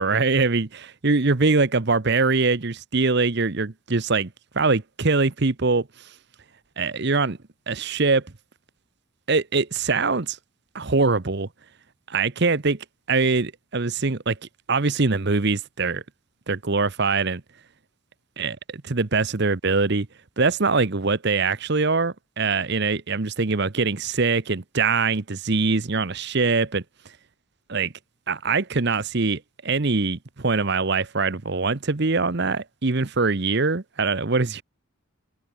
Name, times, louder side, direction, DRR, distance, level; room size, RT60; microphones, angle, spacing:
voice 1, 0.0-4.3 4.5-5.9 6.8-7.4 7.7-8.2 9.3-10.4 10.7-11.5 12.1-14.4 14.7-16.0 16.5-17.4 18.4-20.1 20.4-26.8 27.7-27.9 28.3-34.6, right 4 dB, 50° right, 0.9 m, -23 dB
head